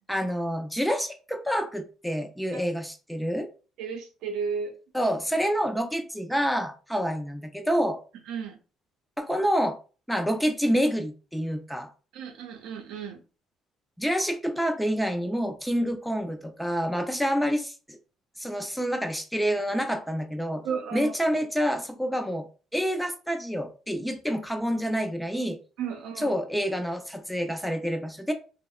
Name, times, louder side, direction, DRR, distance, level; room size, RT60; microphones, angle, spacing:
voice 1, 0.1-3.5 4.9-8.0 9.2-9.8 10.1-11.9 14.0-18.0 18.4-20.6 20.9-22.5 22.7-25.6 26.2-28.3, equal, ahead, 0.3 m, -28 dB
voice 2, 3.8-4.7 8.3-8.6 12.1-13.2 20.6-21.1 25.8-26.4, right 6 dB, 80° right, 0.5 m, -33 dB
2.7 x 2.0 x 2.3 m
cardioid pair, 110°, 0 cm